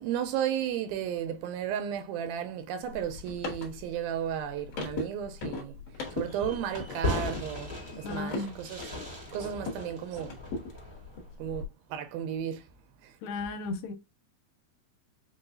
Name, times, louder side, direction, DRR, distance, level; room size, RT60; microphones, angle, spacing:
voice 1, 0.0-5.8 6.1-8.8 9.3-10.4 11.4-12.7 13.0-13.2, right 9 dB, 90° right, 2.5 m, -34 dB
sound 1, 2.8-9.9 10.2-11.7, left 3 dB, 60° left, 1.7 m, -39 dB
Fireworks, 6.0-11.3, left 1 dB, 45° right, 0.5 m, -37 dB
voice 2, 8.0-8.5 13.2-13.9, left 3 dB, 85° left, 2.3 m, -35 dB
5.8 x 2.3 x 2.6 m
omnidirectional pair, 4.2 m